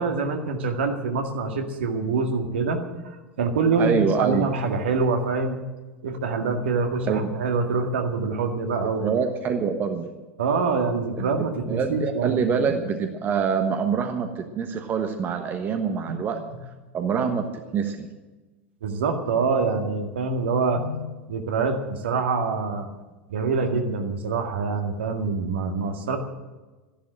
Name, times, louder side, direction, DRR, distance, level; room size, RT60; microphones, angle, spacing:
voice 1, 0.0-2.8 3.0-5.6 6.0-9.1 10.4-12.7 16.1-16.2 18.8-22.9 23.3-26.2, right 4 dB, 65° right, 4 dB, 2.0 m, -25 dB
voice 2, 3.8-4.5 7.0-7.3 9.0-10.1 11.2-16.4 16.9-18.1, right 6 dB, 30° right, 6 dB, 1.2 m, -25 dB
13.5 x 11.5 x 7.6 m, 1.2 s
figure-of-eight pair, 85°, 7 cm